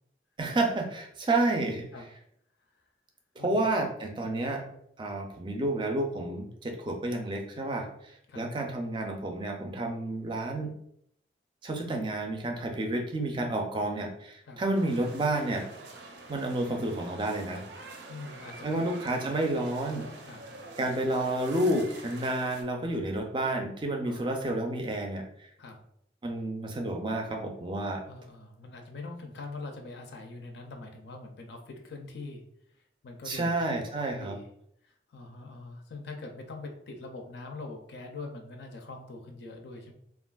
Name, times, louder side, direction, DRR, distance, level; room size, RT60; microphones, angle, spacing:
voice 1, 0.4-1.9 3.4-4.7 5.0-10.7 11.6-15.7 16.3-17.6 18.6-20.1 20.8-25.2 26.2-28.0 33.2-34.4, right 2 dB, 25° right, 3 dB, 0.4 m, -30 dB
sound 1, 14.7-22.6, right 2 dB, 80° right, 0.5 m, -46 dB
voice 2, 18.1-18.8 20.2-20.4 24.0-24.2 25.6-25.8 28.1-32.4 33.0-33.5 34.2-34.5 34.8-39.9, left 3 dB, 65° left, 3 dB, 0.4 m, -43 dB
3.2 x 2.4 x 2.3 m, 0.72 s
head